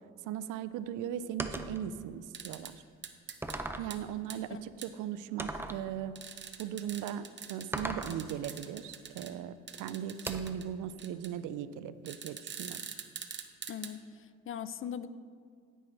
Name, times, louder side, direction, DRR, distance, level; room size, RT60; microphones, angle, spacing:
voice 1, 0.2-2.8 3.7-6.1 6.6-12.8, right 10 dB, 90° right, 14 dB, 0.5 m, -38 dB
sound 1, 1.4-1.8 2.6-2.7 3.4-4.0 5.4-5.8 7.7-8.2 10.3-10.7, right 2 dB, 10° right, 0.5 m, -37 dB
sound 2, 2.3-2.7 3.0-3.6 3.9-4.0 4.3-4.4 4.8-4.9 6.2-9.3 9.7-10.7 11.0-11.3 12.1-13.9, right 7 dB, 40° right, 0.8 m, -44 dB
voice 2, 13.7-15.1, left 8 dB, 45° left, 13 dB, 0.5 m, -40 dB
10.0 x 9.9 x 3.3 m, 2.1 s
cardioid pair, 90°, 30 cm